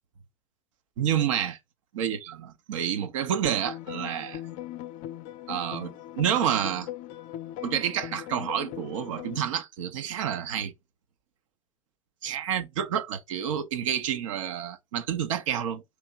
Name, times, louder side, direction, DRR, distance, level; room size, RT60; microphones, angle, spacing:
voice 1, 1.0-1.5 2.0-4.4 5.5-6.9 7.6-10.7 12.2-15.8, right 9 dB, 65° right, 0.8 m, -29 dB
sound 1, 3.6-9.4, left 13 dB, 50° left, 0.5 m, -39 dB
3.5 x 2.9 x 4.7 m
figure-of-eight pair, 80°, 17 cm